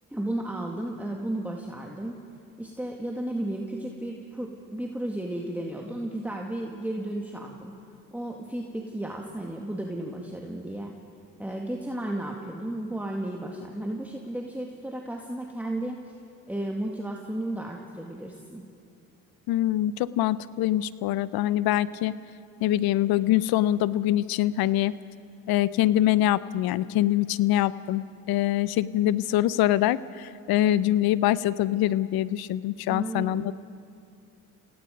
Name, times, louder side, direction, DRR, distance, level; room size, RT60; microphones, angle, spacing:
voice 1, 0.1-2.2 2.6-7.7 8.1-10.9 11.4-16.0 16.5-18.6 32.9-33.5, right 1 dB, 5° right, 0 dB, 2.1 m, -33 dB
voice 2, 19.5-22.2 22.6-24.9 25.5-33.5, left 13 dB, 75° left, 18 dB, 0.7 m, -24 dB
28.0 x 17.5 x 5.3 m, 2.4 s
supercardioid pair, 70°, 37 cm